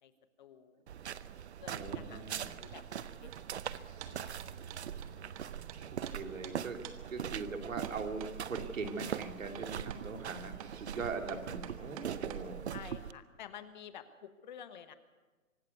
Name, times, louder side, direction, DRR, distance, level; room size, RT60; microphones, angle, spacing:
voice 1, 0.4-0.8 1.6-2.8 3.2-3.3 3.7-4.6 10.9-11.2 12.7-14.9, left 9 dB, 35° left, 11 dB, 1.2 m, -51 dB
sound 1, 0.9-13.1, right 9 dB, 50° right, 0.8 m, -42 dB
voice 2, 1.6-2.6 5.9-6.8 7.1-12.7, right 4 dB, 65° right, 5 dB, 3.0 m, -41 dB
sound 2, 2.3-2.7 3.0-5.8 6.1-6.2 6.4-6.6 6.8-7.0 7.8-12.4, right 11 dB, 25° right, 1.2 m, -48 dB
25.0 x 12.0 x 9.5 m, 1.3 s
hypercardioid pair, 145°, 41 cm